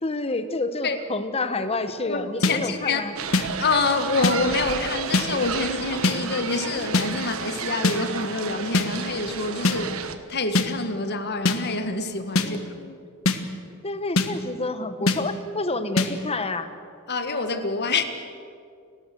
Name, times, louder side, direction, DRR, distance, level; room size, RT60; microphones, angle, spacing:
voice 1, 0.0-3.1 12.4-13.0 13.8-16.7, left 2 dB, 30° left, 10 dB, 1.1 m, -29 dB
voice 2, 2.0-3.0 3.6-10.0 10.3-12.7 17.1-18.0, left 3 dB, 50° left, 8 dB, 1.7 m, -26 dB
sound 1, 2.4-2.6 3.3-3.5 4.2-4.4 5.1-5.3 6.0-6.2 6.9-7.1 7.8-8.0 8.7-8.9 9.6-9.8 10.6-10.7 11.5-11.6 12.4-12.5 13.3-13.4 14.2-14.3 15.1-15.2 16.0-16.1, left 3 dB, 70° left, 1.4 m, -20 dB
sound 2, 3.2-10.2, right 5 dB, 75° right, 1.3 m, -32 dB
30.0 x 13.5 x 7.8 m, 2.3 s
head